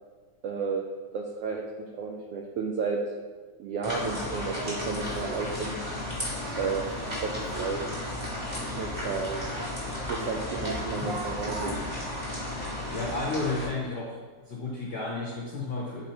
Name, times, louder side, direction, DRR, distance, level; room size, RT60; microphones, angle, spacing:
voice 1, 0.4-0.9 1.1-3.0 3.6-5.8 6.6-6.9 7.2-7.9 8.7-9.5 10.1-11.8 13.6-13.7, right 5 dB, 85° right, 1 dB, 1.3 m, -32 dB
sound 1, 3.8-13.7, left 1 dB, 15° right, 1.7 m, -34 dB
Singing, 3.9-4.2 4.6-5.0 5.2-5.5 6.3-7.9 8.5-10.3 10.5-11.7, right 4 dB, 65° right, 1.5 m, -40 dB
voice 2, 12.9-14.2 14.5-16.1, left 3 dB, 85° left, -3 dB, 0.9 m, -32 dB
10.5 x 3.9 x 4.3 m, 1.5 s
omnidirectional pair, 3.5 m